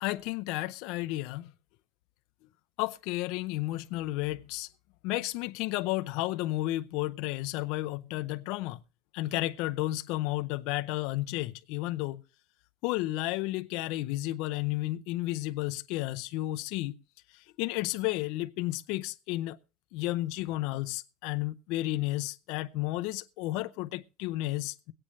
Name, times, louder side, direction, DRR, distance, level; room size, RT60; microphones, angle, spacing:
voice 1, 0.0-1.5 2.8-4.7 5.0-8.8 9.1-12.2 12.8-17.0 17.3-19.6 19.9-24.9, left 18 dB, 60° left, 0.6 m, -32 dB
22.0 x 8.8 x 3.2 m
cardioid pair, 165°, 0 cm